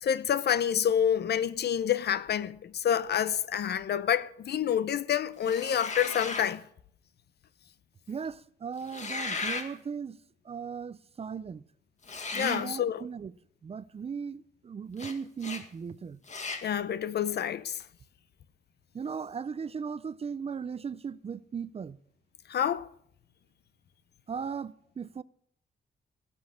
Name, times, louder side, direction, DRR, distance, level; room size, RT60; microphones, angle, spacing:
voice 1, 0.0-6.6 12.3-13.0 16.6-17.8 22.5-22.9, left 9 dB, 65° left, 0.8 m, -28 dB
sound 1, 5.4-6.5 8.8-9.7 12.0-12.6 15.0-15.1 15.4-15.6 16.3-16.6, left 4 dB, 40° left, 1.9 m, -36 dB
voice 2, 8.1-10.2 10.4-11.6 12.3-13.3 13.6-16.2 18.9-22.0 24.3-25.2, right 6 dB, 35° right, 0.5 m, -37 dB
17.5 x 6.2 x 8.6 m
cardioid pair, 115°, 18 cm